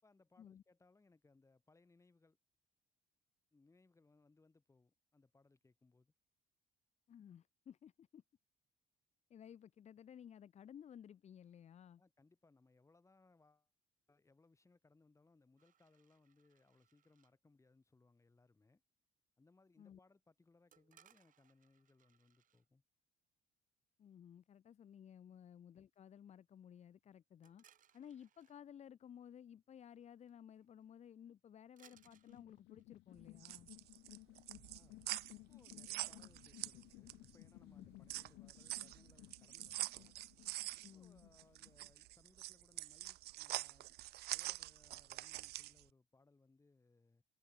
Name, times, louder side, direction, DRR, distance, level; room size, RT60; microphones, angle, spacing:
voice 1, 0.0-2.4 3.5-6.1 12.0-13.7 14.1-18.8 19.4-22.8 34.6-40.2 40.9-44.0 44.3-47.2, left 3 dB, 15° left, 4.5 m, -70 dB
voice 2, 7.1-8.2 9.3-12.0 19.8-20.0 24.0-27.6 27.9-33.7 37.6-37.9 40.8-41.2, left 9 dB, 40° left, 0.8 m, -57 dB
sound 1, 15.6-17.3 20.7-22.7 27.4-28.6 30.3-30.4 30.6-30.8 31.8-33.2, right 10 dB, 50° right, 1.9 m, -71 dB
sound 2, 31.9-41.9, left 21 dB, 90° left, 0.7 m, -59 dB
sound 3, 33.2-37.3 37.7-45.8, right 17 dB, 70° right, 0.5 m, -45 dB
cardioid pair, 110°, 17 cm